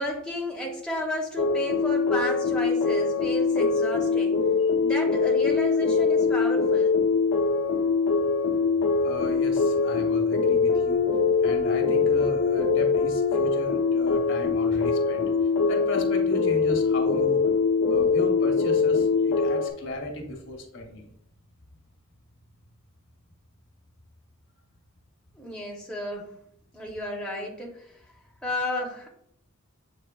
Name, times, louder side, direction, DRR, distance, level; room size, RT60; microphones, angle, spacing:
voice 1, 0.0-4.4 4.8-6.9 25.4-26.3 26.7-28.0 28.4-29.1, left 1 dB, 5° left, -2 dB, 0.7 m, -32 dB
sound 1, 1.4-19.7, left 4 dB, 85° left, 0.7 m, -23 dB
voice 2, 9.0-11.0 11.4-15.3 15.7-17.5 17.9-21.1, left 1 dB, 60° left, 2 dB, 0.9 m, -35 dB
7.4 x 3.0 x 2.3 m, 0.69 s
head